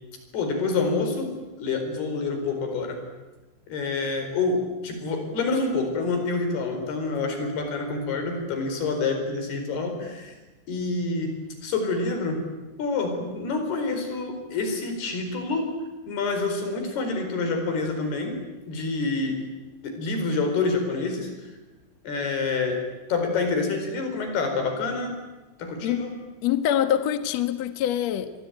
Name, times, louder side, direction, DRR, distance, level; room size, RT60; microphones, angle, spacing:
voice 1, 0.3-1.3 1.6-3.0 3.7-10.3 10.7-12.5 12.8-15.8 16.1-18.4 18.7-19.4 19.8-21.3 22.0-22.8 23.1-25.1 25.6-26.1, left 3 dB, 60° left, 6 dB, 6.3 m, -27 dB
voice 2, 26.4-28.3, left 10 dB, 80° left, 10 dB, 1.5 m, -24 dB
26.5 x 23.0 x 9.3 m, 1.1 s
omnidirectional pair, 5.3 m